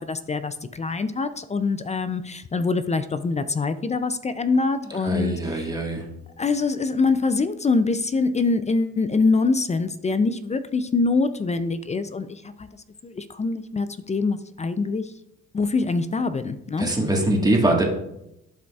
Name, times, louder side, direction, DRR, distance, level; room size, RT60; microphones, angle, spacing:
voice 1, 0.0-5.7 6.4-12.7 13.0-15.1 15.5-16.9, left 4 dB, 25° left, 12 dB, 0.4 m, -24 dB
voice 2, 5.0-6.0 16.8-17.8, right 1 dB, 15° right, 0 dB, 1.5 m, -22 dB
11.5 x 5.1 x 2.4 m, 0.84 s
cardioid pair, 90°, 30 cm